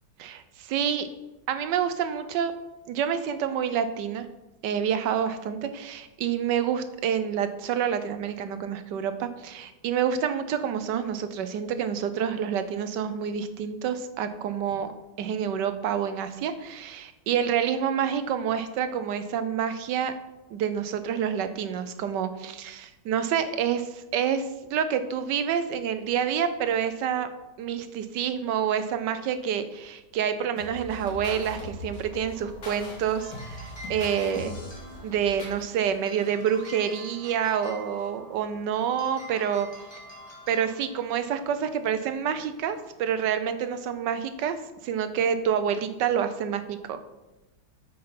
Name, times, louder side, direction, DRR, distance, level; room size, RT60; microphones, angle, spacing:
voice 1, 0.2-1.1 1.5-2.5 2.9-4.3 4.6-14.9 15.2-20.1 20.5-27.3 27.6-34.6 35.0-39.7 40.5-44.6 44.8-47.0, right 8 dB, 90° right, 11 dB, 1.4 m, -28 dB
sound 1, 30.6-35.6, left 1 dB, 60° left, 2.9 m, -40 dB
sound 2, 32.9-43.3, equal, 15° left, 2.1 m, -47 dB
8.6 x 5.6 x 5.7 m, 1.0 s
omnidirectional pair, 1.8 m